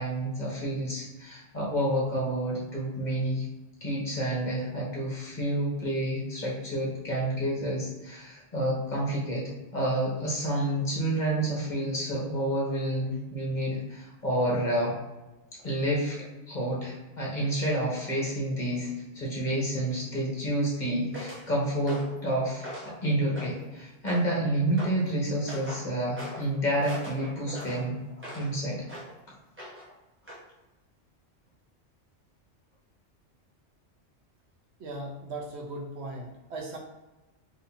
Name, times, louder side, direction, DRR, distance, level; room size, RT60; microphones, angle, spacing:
voice 1, 0.0-3.4 3.8-9.4 9.7-14.9 15.6-16.2 16.5-18.9 19.1-28.0 28.3-28.8, right 1 dB, 40° left, -5 dB, 1.6 m, -29 dB
sound 1, 21.1-21.4 21.9-22.2 22.6-23.0 23.3-23.7 24.1-24.4 24.8-25.0 25.5-25.9 26.2-26.5 26.8-28.5 28.9-29.1 29.6-29.9 30.3-30.4, equal, 10° right, 1.1 m, -41 dB
voice 2, 34.8-36.8, right 2 dB, 70° right, 0 dB, 1.0 m, -38 dB
3.9 x 2.8 x 4.1 m, 1.1 s
omnidirectional pair, 1.2 m